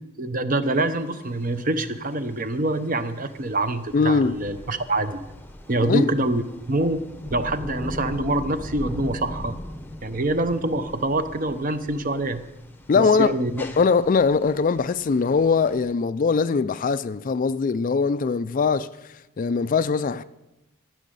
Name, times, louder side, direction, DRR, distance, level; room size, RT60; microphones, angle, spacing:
voice 1, 0.2-5.2 5.7-6.4 6.7-7.0 7.3-9.6 10.0-12.4 13.0-13.6, right 2 dB, 40° right, 0.7 m, -25 dB
sound 1, 0.7-15.9, left 1 dB, 10° left, 0.8 m, -40 dB
voice 2, 3.9-4.4 5.8-6.1 12.9-13.4 13.6-18.9 19.4-20.2, left 5 dB, 40° left, 0.4 m, -21 dB
13.5 x 6.3 x 9.2 m
head